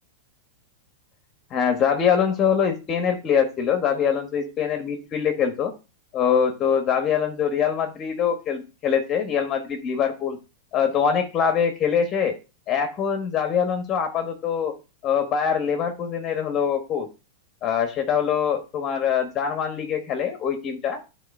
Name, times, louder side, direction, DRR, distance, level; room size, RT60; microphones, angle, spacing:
voice 1, 1.5-5.7 6.1-10.4 10.7-12.4 12.7-14.8 15.0-17.1 17.6-21.0, left 7 dB, 30° left, 5 dB, 1.4 m, -23 dB
10.5 x 4.0 x 5.3 m, 0.31 s
hypercardioid pair, 125°, 0 cm